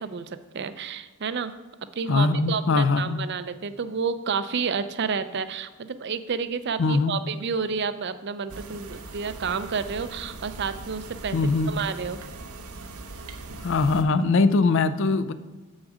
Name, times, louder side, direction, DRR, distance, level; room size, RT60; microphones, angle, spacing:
voice 1, 0.0-1.5 2.0-11.4 11.7-12.3, right 5 dB, 50° right, 12 dB, 0.5 m, -30 dB
voice 2, 2.1-3.2 6.8-7.2 11.3-11.8 13.6-15.3, left 3 dB, 55° left, 13 dB, 0.4 m, -22 dB
sound 1, 8.5-14.0, right 3 dB, 85° right, 0.8 m, -40 dB
7.4 x 6.2 x 4.9 m, 1.3 s
head